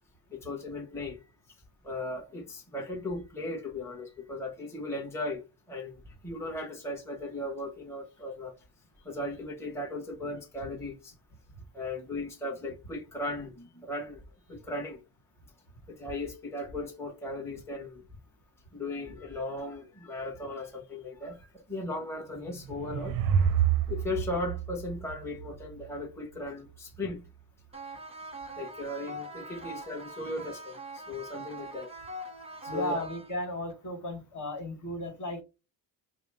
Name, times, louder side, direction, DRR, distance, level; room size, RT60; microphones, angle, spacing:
voice 1, 0.3-1.2 1.8-5.4 5.7-6.0 6.2-8.6 9.0-11.1 11.7-14.2 14.5-15.0 15.9-18.0 18.7-23.2 23.9-27.3 28.6-31.9 32.6-33.0, left 2 dB, 5° left, 1.2 m, -37 dB
sound 1, 22.4-25.8, right 8 dB, 50° right, 0.5 m, -28 dB
sound 2, 27.7-33.7, right 2 dB, 15° right, 1.1 m, -43 dB
voice 2, 32.7-35.4, left 1 dB, 45° left, 1.7 m, -35 dB
4.9 x 2.1 x 3.5 m
cardioid pair, 105°, 44 cm